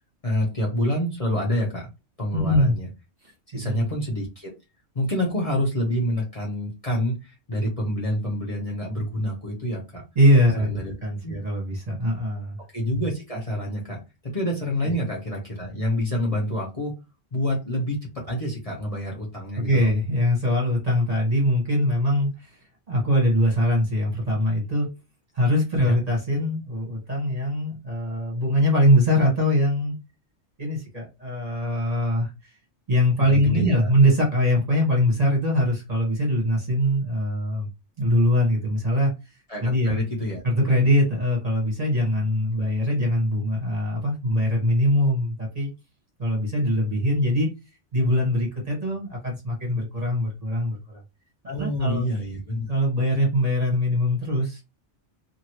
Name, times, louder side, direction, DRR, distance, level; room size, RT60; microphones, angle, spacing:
voice 1, 0.2-1.9 2.2-2.9 3.5-4.5 4.9-10.0 10.6-10.9 11.2-11.4 12.7-14.0 14.3-17.0 17.3-19.9 25.8-26.0 33.2-33.9 39.5-40.4 42.6-42.7 51.5-52.7, left 1 dB, 35° left, 0.9 m, -27 dB
voice 2, 2.3-2.8 3.5-3.9 10.1-12.6 14.8-15.0 19.6-22.6 22.9-24.9 25.3-29.9 30.6-32.3 32.9-37.7 38.0-39.1 39.6-40.0 40.4-45.7 46.2-47.5 47.9-51.0 51.4-52.0 52.7-54.6, equal, 35° right, 1.2 m, -22 dB
2.8 x 2.6 x 2.9 m
omnidirectional pair, 1.2 m